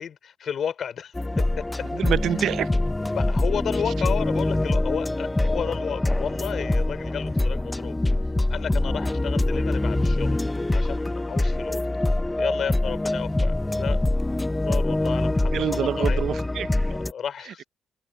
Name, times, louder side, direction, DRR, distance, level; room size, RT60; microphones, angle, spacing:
voice 1, 0.0-1.9 3.1-7.9 8.5-10.4 10.7-11.8 12.4-14.1 14.5-16.2 16.9-17.6, left 8 dB, 50° left, 4.1 m, -32 dB
sound 1, 1.1-17.1, left 2 dB, 10° left, 0.9 m, -24 dB
voice 2, 1.9-2.7 15.5-16.7, right 10 dB, 60° right, 0.8 m, -26 dB
cardioid pair, 145°, 0 cm